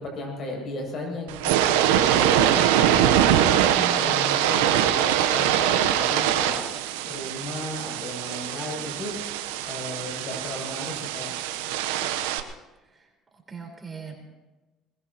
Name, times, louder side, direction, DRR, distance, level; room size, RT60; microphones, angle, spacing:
voice 1, 0.0-3.5 3.9-6.6 7.1-9.1 9.7-11.3, left 1 dB, 55° left, 0 dB, 7.4 m, -35 dB
sound 1, 1.3-12.4, right 10 dB, 85° right, 1.0 m, -23 dB
voice 2, 3.6-4.1 12.8-13.1 13.5-14.1, right 6 dB, 30° right, 1 dB, 4.5 m, -38 dB
21.5 x 20.5 x 3.0 m, 1.1 s
supercardioid pair, 75°, 0 cm